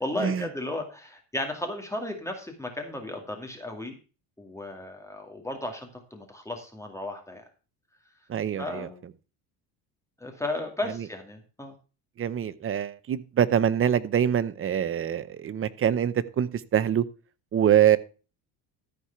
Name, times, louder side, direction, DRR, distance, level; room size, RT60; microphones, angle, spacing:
voice 1, 0.0-3.9 4.4-7.4 8.6-9.0 10.2-11.7, left 1 dB, 5° left, 2.1 m, -34 dB
voice 2, 8.3-8.9 10.9-11.0 12.2-17.0 17.5-18.0, right 9 dB, 30° right, 0.8 m, -24 dB
13.5 x 4.9 x 5.7 m
cardioid pair, 115°, 45 cm